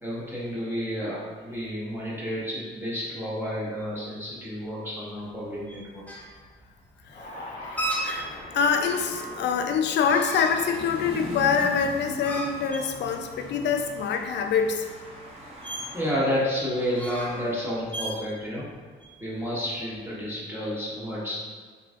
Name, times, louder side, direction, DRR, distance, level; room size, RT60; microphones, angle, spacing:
voice 1, 0.0-6.0 15.9-18.7 19.2-21.3, equal, 10° right, -7 dB, 1.3 m, -30 dB
sound 1, 5.3-20.2, right 1 dB, 5° left, 0.6 m, -37 dB
sound 2, 7.0-13.3, left 1 dB, 40° left, 1.0 m, -43 dB
voice 2, 8.0-14.8, left 6 dB, 60° left, 5 dB, 0.4 m, -25 dB
sound 3, 10.4-16.1, equal, 30° right, 1.1 m, -40 dB
3.9 x 3.1 x 2.4 m, 1.5 s
cardioid pair, 90°, 20 cm